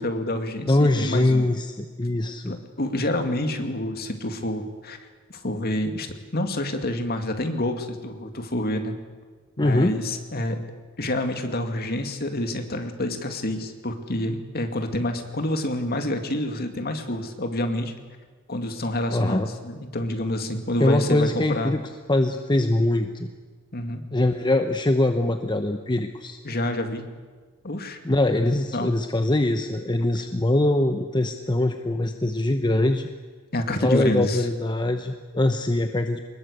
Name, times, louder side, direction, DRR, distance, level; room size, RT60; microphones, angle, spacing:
voice 1, 0.0-1.5 2.5-5.0 5.3-6.1 6.3-8.9 9.6-10.6 11.0-17.9 18.5-21.7 23.7-24.0 26.4-27.0 27.6-28.0 28.7-29.0 33.5-34.5, left 1 dB, 45° left, 6 dB, 2.3 m, -28 dB
voice 2, 0.7-2.5 9.6-9.9 19.1-19.5 20.8-21.8 22.1-23.3 24.1-26.4 28.0-33.1 33.8-36.2, left 1 dB, 20° left, 7 dB, 0.9 m, -22 dB
23.5 x 20.5 x 8.3 m, 1.4 s
head